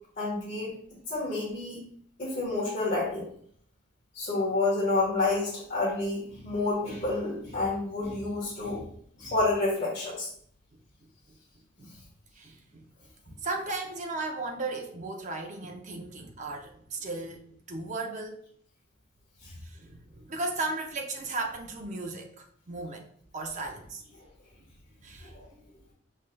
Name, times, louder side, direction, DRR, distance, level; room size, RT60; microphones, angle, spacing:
voice 1, 0.2-0.7 1.1-1.8 2.2-3.2 4.1-8.8 9.2-10.3 19.4-19.5 25.5-25.6, left 2 dB, 40° left, -10 dB, 1.3 m, -29 dB
voice 2, 12.4-12.9 13.4-18.4 19.6-23.1 23.3-24.0 25.0-25.3, right 3 dB, 35° right, 2 dB, 0.5 m, -36 dB
5.4 x 3.2 x 2.2 m, 0.62 s
head